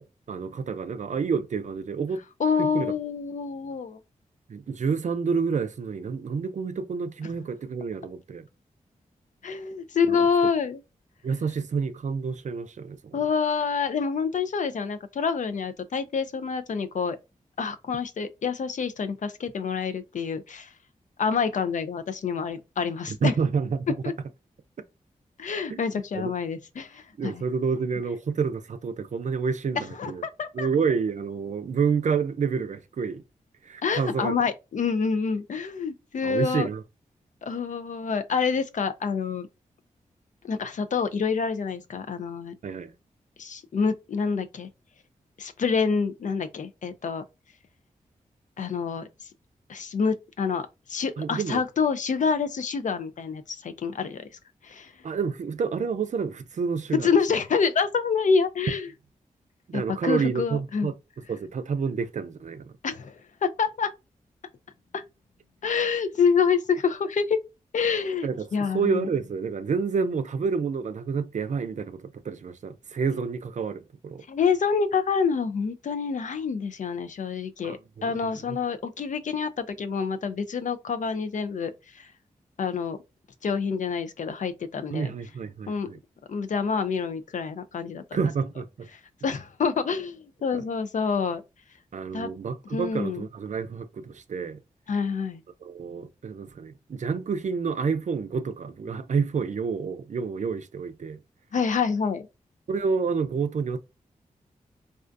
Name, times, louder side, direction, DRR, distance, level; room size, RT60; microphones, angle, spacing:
voice 1, 0.0-2.2 2.6-2.9 4.5-8.5 10.1-10.3 11.2-13.2 23.1-24.0 25.7-25.8 26.1-26.3 27.2-30.2 30.5-33.2 33.6-34.4 36.2-36.8 42.6-42.9 51.2-51.6 55.0-57.1 59.7-60.9 61.3-62.7 68.2-74.2 77.6-78.1 78.5-78.6 84.9-86.0 88.1-88.9 91.9-94.6 95.6-101.2 102.7-103.8, right 5 dB, 55° right, 0.4 m, -29 dB
voice 2, 2.4-4.0 9.4-10.8 13.1-17.2 17.6-20.7 21.2-23.3 24.0-24.1 25.4-27.4 29.8-30.7 33.8-36.7 37.4-39.5 40.4-42.5 43.4-44.7 45.4-47.2 48.6-49.1 49.7-54.3 54.6-54.9 57.0-58.9 59.7-60.9 62.8-63.9 64.9-65.0 65.6-67.4 67.7-69.1 74.3-82.1 82.6-83.0 83.4-85.1 85.7-85.9 86.3-88.0 88.9-91.4 92.1-92.3 92.7-93.2 94.9-95.4 101.5-102.3, left 5 dB, 60° left, 0.4 m, -27 dB
2.4 x 2.2 x 2.5 m
supercardioid pair, 40°, 15 cm